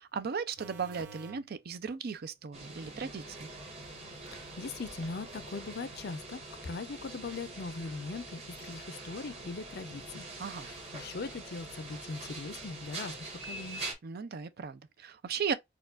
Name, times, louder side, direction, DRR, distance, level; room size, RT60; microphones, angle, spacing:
voice 1, 0.0-3.5 10.4-10.7 14.0-15.5, right 6 dB, 55° right, 0.5 m, -36 dB
sound 1, 0.6-1.5 7.8-7.9, right 4 dB, 80° right, 1.0 m, -48 dB
sound 2, 2.5-13.9, right 2 dB, 35° right, 1.3 m, -44 dB
voice 2, 4.3-10.3 10.5-13.1 13.4-13.8, left 4 dB, 55° left, 0.5 m, -40 dB
4.3 x 2.3 x 2.4 m
head